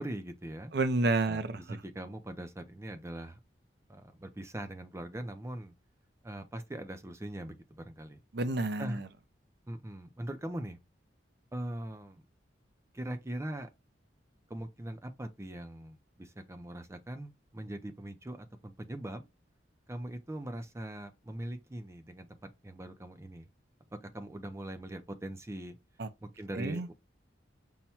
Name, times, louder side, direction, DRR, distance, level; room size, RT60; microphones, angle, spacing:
voice 1, 0.0-0.7 1.3-3.4 3.9-5.7 6.2-8.2 8.8-9.0 9.7-10.8 11.5-12.2 12.9-13.7 14.5-19.3 19.9-23.5 23.9-25.8 26.2-26.9, right 1 dB, 15° right, 0.5 m, -41 dB
voice 2, 0.7-1.8 8.3-9.1 26.0-26.1 26.5-26.9, right 2 dB, 60° right, 0.6 m, -30 dB
5.6 x 2.2 x 4.3 m
head